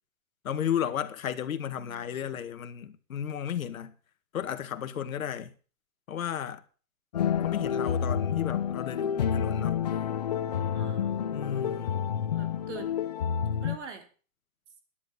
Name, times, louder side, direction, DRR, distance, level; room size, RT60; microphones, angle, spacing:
voice 1, 0.4-3.9 4.3-5.5 6.1-6.6 7.4-9.8 11.3-12.0, left 9 dB, 65° left, 1.9 m, -33 dB
voice 2, 1.8-2.4 7.8-8.2 10.7-11.1 12.3-12.9 13.6-14.1, right 6 dB, 50° right, 3.5 m, -45 dB
sound 1, 7.1-13.8, left 8 dB, 30° left, 0.7 m, -29 dB
12.5 x 10.5 x 7.1 m
hypercardioid pair, 175°, 43 cm